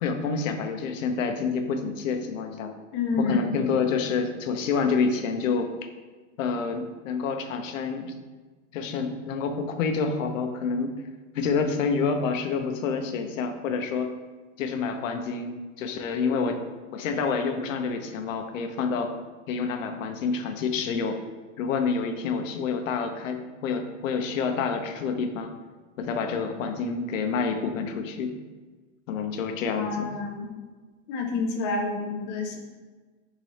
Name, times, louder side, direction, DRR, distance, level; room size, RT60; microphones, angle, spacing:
voice 1, 0.0-2.7 3.2-5.7 6.4-8.1 8.7-10.9 11.3-14.1 14.6-16.6 16.9-19.1 19.5-21.2 21.6-25.5 26.0-28.3 29.1-30.1, left 5 dB, 85° left, 6 dB, 0.7 m, -28 dB
voice 2, 2.9-3.6 29.8-30.5 31.1-32.6, left 3 dB, 30° left, 2 dB, 0.5 m, -28 dB
3.7 x 3.2 x 4.1 m, 1.3 s
supercardioid pair, 150°, 38 cm